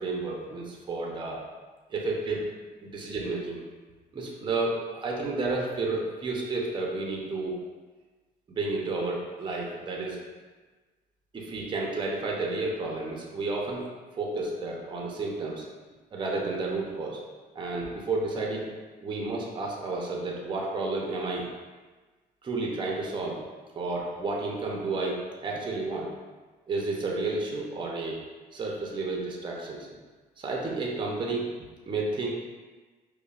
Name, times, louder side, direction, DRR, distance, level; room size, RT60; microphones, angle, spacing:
voice 1, 0.0-1.4 1.9-2.5 2.8-3.6 4.1-7.6 8.5-10.2 11.3-13.8 14.1-15.6 16.1-17.2 17.5-18.7 19.0-21.5 22.4-23.4 23.8-26.1 26.7-28.2 28.5-29.9 30.4-31.5 31.9-32.3, right 3 dB, 30° right, -2 dB, 0.7 m, -31 dB
5.2 x 2.2 x 2.4 m, 1.3 s
cardioid pair, 110°, 17 cm